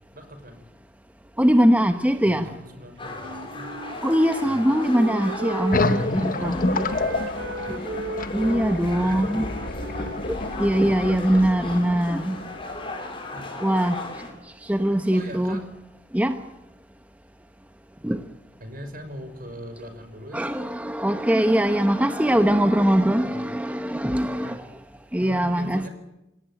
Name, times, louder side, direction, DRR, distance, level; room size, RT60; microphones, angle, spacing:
voice 1, 0.1-0.6 2.2-3.7 4.4-4.6 8.9-9.5 12.4-12.5 13.3-13.6 15.1-15.7 18.6-20.5 23.1-23.5 24.3-24.6 25.2-25.9, equal, 50° right, 8 dB, 5.7 m, -40 dB
voice 2, 1.4-2.5 4.0-6.8 8.3-9.4 10.3-12.4 13.6-14.0 14.7-15.6 16.1-16.3 18.0-18.2 20.3-24.6 25.1-25.9, equal, 10° right, 7 dB, 1.0 m, -21 dB
sound 1, 3.0-14.3, left 2 dB, 30° left, 5.7 m, -37 dB
Wind instrument woodwind instrument, 3.1-6.5 6.8-10.7, right 3 dB, 85° right, 1.0 m, -36 dB
sound 2, 5.7-12.9, left 2 dB, 50° left, 1.3 m, -29 dB
27.5 x 18.0 x 9.0 m, 0.94 s
head